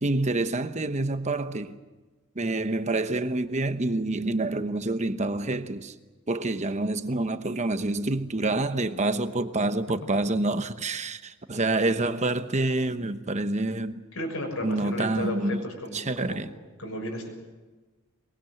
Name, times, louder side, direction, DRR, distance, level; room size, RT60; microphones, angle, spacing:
voice 1, 0.0-1.8 2.4-5.9 6.3-14.0 14.6-15.6 15.9-16.5, right 2 dB, 30° right, 1.0 m, -27 dB
voice 2, 14.1-16.4 16.8-17.3, left 1 dB, 70° left, 6.6 m, -34 dB
23.0 x 22.0 x 7.9 m
head